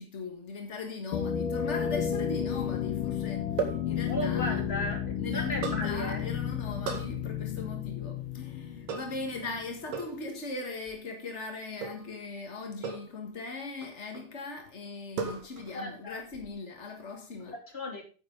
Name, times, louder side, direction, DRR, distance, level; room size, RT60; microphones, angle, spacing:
voice 1, 0.0-4.6 5.2-17.6, left 3 dB, 45° left, 0.8 m, -39 dB
sound 1, 1.1-9.8, left 8 dB, 85° left, 2.6 m, -32 dB
sound 2, 1.8-2.8 3.6-3.9 5.6-5.9 6.9-7.2 8.9-9.3 9.9-10.2 11.8-12.1 12.8-13.2 13.8-14.3 15.2-15.8 16.1-16.5, right 6 dB, 80° right, 3.5 m, -36 dB
voice 2, 4.1-6.3 15.7-16.2 17.7-18.0, equal, 20° left, 2.7 m, -35 dB
10.0 x 9.3 x 3.8 m
omnidirectional pair, 3.7 m